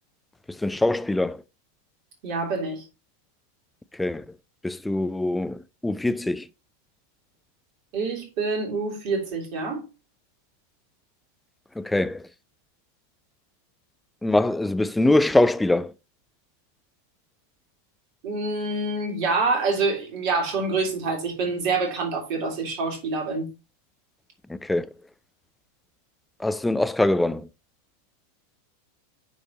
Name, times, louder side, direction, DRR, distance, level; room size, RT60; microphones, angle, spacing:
voice 1, 0.5-1.4 3.9-4.4 4.6-6.5 11.8-12.3 14.2-15.9 24.5-24.9 26.4-27.5, left 2 dB, 5° left, 0.3 m, -23 dB
voice 2, 2.2-2.8 7.9-9.8 18.2-23.5, right 3 dB, 45° right, 2.4 m, -26 dB
9.8 x 3.3 x 2.9 m
figure-of-eight pair, 90°, 0 cm